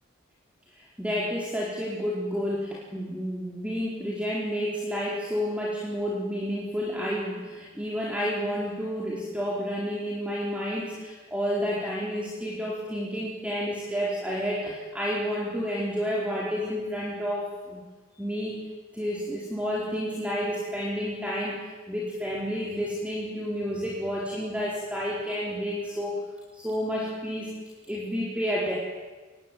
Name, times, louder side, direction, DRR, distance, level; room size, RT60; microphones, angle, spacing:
voice 1, 0.7-17.8 18.2-18.7 18.9-26.2 26.5-27.6 27.9-28.8, equal, 5° right, -4 dB, 4.4 m, -30 dB
25.0 x 22.0 x 9.4 m, 1.3 s
head